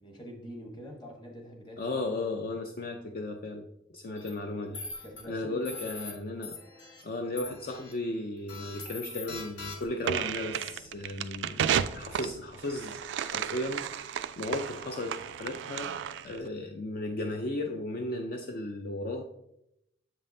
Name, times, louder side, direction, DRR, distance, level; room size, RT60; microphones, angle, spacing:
voice 1, 0.0-1.9 5.0-6.2, equal, 25° left, 1 dB, 1.2 m, -45 dB
voice 2, 1.8-3.7 3.9-6.6 7.0-19.2, left 2 dB, 50° left, 4 dB, 0.4 m, -35 dB
sound 1, 4.2-4.3 4.7-5.2 5.6-6.1 6.4-7.0 7.4-7.9 8.5-10.1, left 4 dB, 75° left, 1.4 m, -42 dB
sound 2, 10.0-16.4, right 9 dB, 75° right, 0.3 m, -33 dB
7.3 x 5.4 x 2.7 m, 0.80 s
head